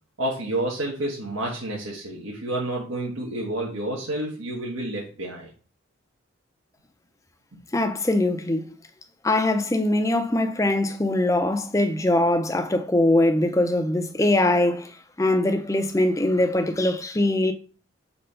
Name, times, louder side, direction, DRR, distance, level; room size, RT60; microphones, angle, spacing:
voice 1, 0.2-5.5, right 1 dB, 85° right, 1.4 m, -29 dB
voice 2, 7.7-8.7 9.2-14.9 15.2-17.5, left 1 dB, 15° left, 0.5 m, -22 dB
4.3 x 4.2 x 5.3 m
head